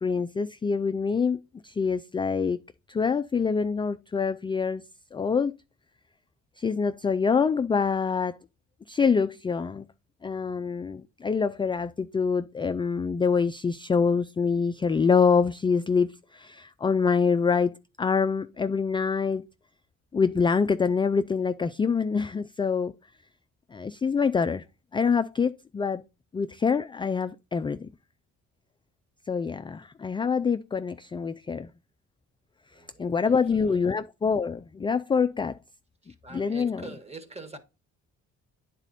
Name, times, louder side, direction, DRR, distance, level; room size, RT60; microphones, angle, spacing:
voice 1, 0.0-2.6 2.9-4.8 5.1-5.5 6.6-8.4 8.9-9.9 10.2-17.7 18.0-19.4 20.1-22.9 23.7-24.6 24.9-26.0 26.3-27.9 29.3-31.7 33.0-35.6 36.3-36.8, left 5 dB, 15° left, 0.3 m, -25 dB
voice 2, 32.7-33.9 35.4-35.5 36.0-37.6, right 2 dB, 20° right, 1.5 m, -45 dB
9.7 x 4.1 x 4.1 m
cardioid pair, 90°, 30 cm